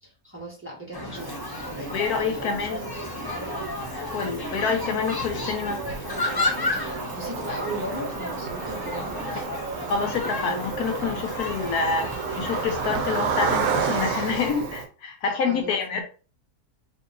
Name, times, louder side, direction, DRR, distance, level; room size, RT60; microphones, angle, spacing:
voice 1, 0.0-1.4 1.6-3.1 4.4-4.7 6.6-9.5 15.3-15.7, right 1 dB, 10° right, 1.1 m, -38 dB
sound 1, 0.9-14.5, left 1 dB, 25° left, 0.5 m, -32 dB
Cricket, 1.2-14.9, right 6 dB, 70° right, 1.0 m, -33 dB
voice 2, 1.9-2.8 3.9-5.8 9.9-12.1 12.4-16.0, left 5 dB, 80° left, 1.3 m, -27 dB
3.0 x 2.8 x 3.9 m
omnidirectional pair, 1.6 m